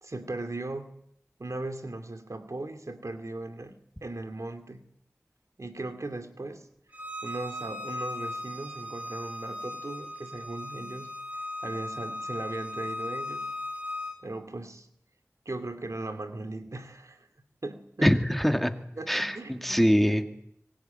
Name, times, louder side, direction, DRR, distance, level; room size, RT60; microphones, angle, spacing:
voice 1, 0.0-1.0 1.4-3.8 4.0-4.8 5.6-6.7 7.2-11.1 11.6-13.5 14.2-14.9 15.5-17.3 17.6-18.1 19.0-19.8 20.1-20.2, right 2 dB, 80° right, 8 dB, 2.5 m, -38 dB
Bowed string instrument, 6.9-14.2, left 1 dB, 30° right, 4.8 m, -37 dB
voice 2, 18.0-18.7 19.1-20.2, equal, 5° left, 7 dB, 2.2 m, -23 dB
25.0 x 21.0 x 9.3 m, 0.72 s
wide cardioid pair, 45°, 5 cm